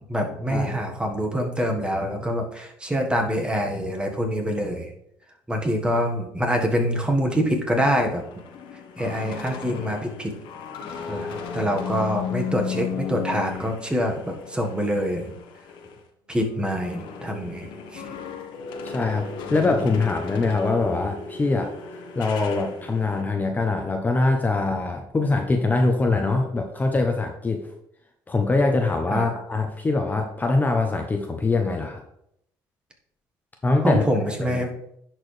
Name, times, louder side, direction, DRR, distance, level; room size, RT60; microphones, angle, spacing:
voice 1, 0.1-4.9 5.5-8.2 9.0-10.3 11.1-15.4 16.3-18.0 29.1-29.3 33.8-34.7, equal, 10° right, 2 dB, 1.5 m, -25 dB
sound 1, 7.6-16.0 16.4-23.2, left 6 dB, 85° left, 1.1 m, -35 dB
voice 2, 18.8-21.7 22.2-27.7 28.3-32.0 33.6-34.0 34.4-34.6, left 3 dB, 20° left, 3 dB, 0.8 m, -23 dB
10.5 x 4.5 x 3.3 m, 0.76 s
cardioid pair, 100°, 8 cm